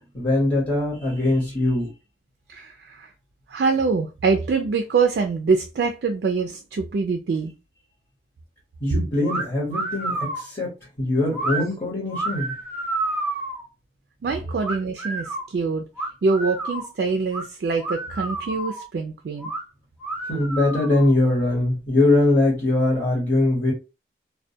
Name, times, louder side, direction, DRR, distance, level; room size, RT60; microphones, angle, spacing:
voice 1, 0.1-1.9 8.8-10.7 11.0-12.6 20.3-23.7, left 2 dB, 25° left, 0.9 m, -21 dB
voice 2, 2.5-3.1 3.5-7.5 14.2-15.8 16.2-19.5, right 4 dB, 65° right, 0.3 m, -24 dB
sound 1, 9.3-9.4 9.7-10.5 11.3-11.6 12.1-13.6 14.6-15.5 16.0-16.9 17.3-17.4 17.8-18.9 19.4-19.6 20.0-21.1, right 2 dB, 10° right, 0.6 m, -29 dB
2.2 x 2.1 x 2.6 m
head